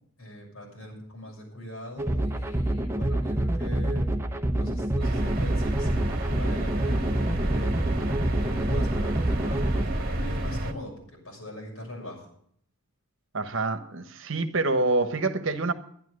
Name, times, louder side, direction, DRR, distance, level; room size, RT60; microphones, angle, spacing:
voice 1, 0.2-4.1 4.5-6.0 6.3-7.8 8.4-12.3, left 1 dB, 80° left, -1 dB, 6.6 m, -41 dB
sound 1, 2.0-9.9, right 1 dB, 10° right, 0.9 m, -27 dB
sound 2, 5.0-10.7, right 1 dB, 45° right, 1.4 m, -29 dB
voice 2, 13.3-15.7, right 3 dB, 65° right, 9 dB, 1.1 m, -26 dB
12.0 x 10.5 x 6.3 m, 0.64 s
head